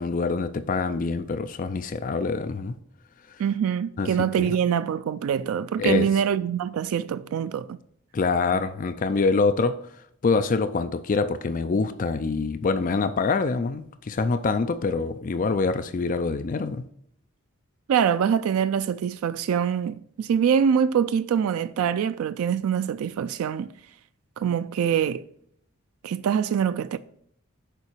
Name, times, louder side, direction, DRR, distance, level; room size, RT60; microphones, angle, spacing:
voice 1, 0.0-2.7 4.0-4.1 4.4-4.5 5.8-6.1 8.1-9.8 10.2-16.8, left 4 dB, 40° left, 0.4 m, -25 dB
voice 2, 3.4-7.8 17.9-23.7 24.4-25.2 26.0-27.0, right 8 dB, 80° right, 0.3 m, -24 dB
6.9 x 4.8 x 4.5 m
head